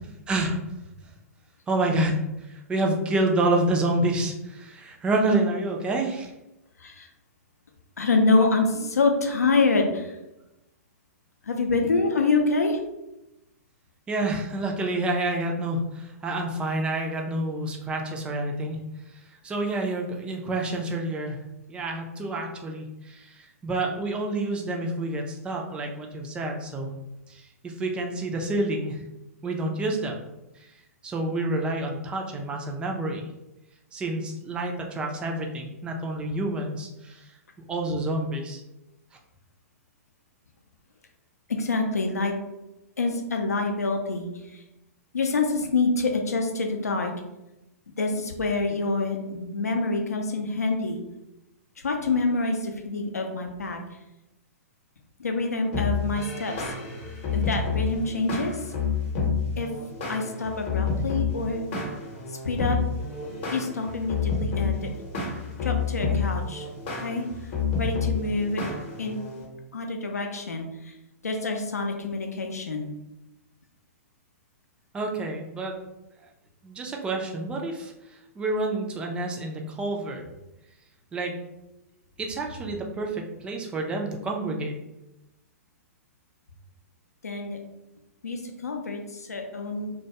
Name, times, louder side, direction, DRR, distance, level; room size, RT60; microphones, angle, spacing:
voice 1, 0.3-0.6 1.7-2.2 2.5-6.3 14.1-18.8 19.4-21.4 21.7-26.9 27.3-29.0 29.4-30.2 31.0-33.2 33.9-37.3 37.7-38.6 74.9-75.8 76.6-77.9 78.4-80.2 81.1-81.3 82.2-84.8, right 2 dB, 10° right, 1 dB, 0.3 m, -28 dB
voice 2, 8.0-10.2 11.4-12.8 41.5-42.3 43.0-44.6 45.1-47.2 48.0-51.0 51.8-53.8 55.2-56.5 57.3-58.7 59.6-59.7 60.1-61.7 62.4-62.8 63.5-64.9 65.6-66.7 67.0-67.2 67.8-68.6 69.0-69.2 69.7-70.9 71.2-72.9 87.2-87.6 88.2-89.9, left 3 dB, 75° left, 3 dB, 0.5 m, -26 dB
sound 1, 55.7-69.4, left 5 dB, 40° left, 0.8 m, -29 dB
2.2 x 2.2 x 2.8 m, 0.93 s
figure-of-eight pair, 110°, 9 cm